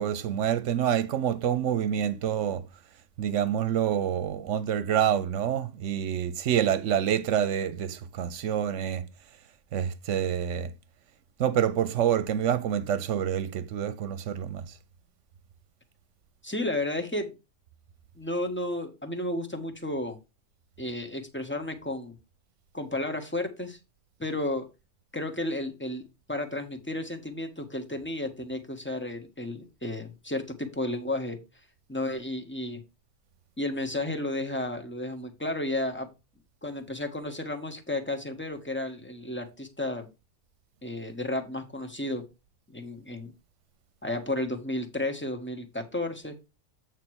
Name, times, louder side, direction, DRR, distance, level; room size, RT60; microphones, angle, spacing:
voice 1, 0.0-2.6 3.2-9.1 9.7-10.7 11.4-14.7, right 9 dB, 80° right, 1.1 m, -27 dB
voice 2, 16.4-17.3 18.2-20.2 20.8-22.1 22.7-23.8 24.2-24.6 25.1-26.0 26.3-31.4 31.9-32.8 33.6-36.1 36.6-40.1 40.8-42.2 42.7-43.3 44.0-46.3, left 1 dB, 10° left, 1.3 m, -32 dB
8.3 x 3.2 x 6.2 m
omnidirectional pair, 1.2 m